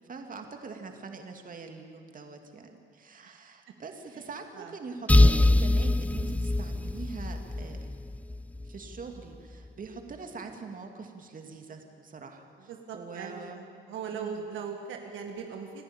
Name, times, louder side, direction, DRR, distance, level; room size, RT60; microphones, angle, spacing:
voice 1, 0.0-7.8 8.6-13.6 14.1-14.5, right 4 dB, 45° right, 4 dB, 2.5 m, -43 dB
sound 1, 5.1-8.8, left 2 dB, 5° left, 0.5 m, -23 dB
voice 2, 12.6-15.8, right 6 dB, 80° right, 3 dB, 1.9 m, -39 dB
28.5 x 12.0 x 9.0 m, 2.2 s
cardioid pair, 90°, 20 cm